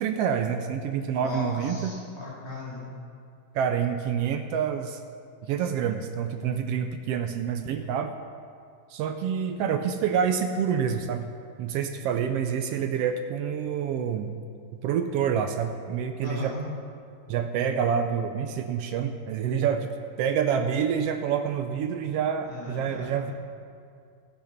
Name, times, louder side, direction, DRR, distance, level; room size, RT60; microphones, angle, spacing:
voice 1, 0.0-1.9 3.5-5.0 5.5-8.1 8.9-11.3 11.6-14.3 14.8-16.5 17.3-19.9 20.2-23.3, right 7 dB, 80° right, 7 dB, 1.4 m, -27 dB
voice 2, 1.1-2.8 16.2-16.6 22.4-23.3, left 2 dB, 10° left, -8 dB, 3.1 m, -37 dB
15.0 x 8.1 x 5.8 m, 2.2 s
omnidirectional pair, 3.3 m